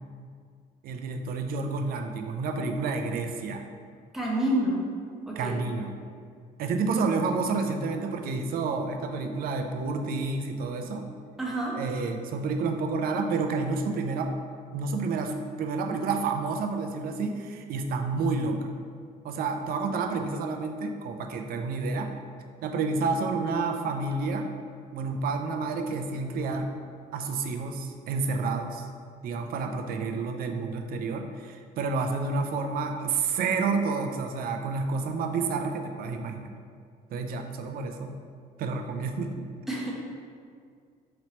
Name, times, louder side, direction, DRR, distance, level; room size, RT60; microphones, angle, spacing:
voice 1, 0.8-3.6 5.4-5.9 6.6-11.1 11.7-14.3 14.7-18.7 19.2-22.1 22.6-24.5 24.9-26.7 27.1-28.9 29.2-36.5 37.1-38.2 38.6-39.5, right 4 dB, 60° right, 4 dB, 0.4 m, -29 dB
voice 2, 4.1-4.8 5.2-5.6 11.4-11.8 39.7-39.9, right 1 dB, ahead, -4 dB, 0.8 m, -28 dB
4.3 x 2.9 x 2.9 m, 2.1 s
cardioid pair, 110°, 17 cm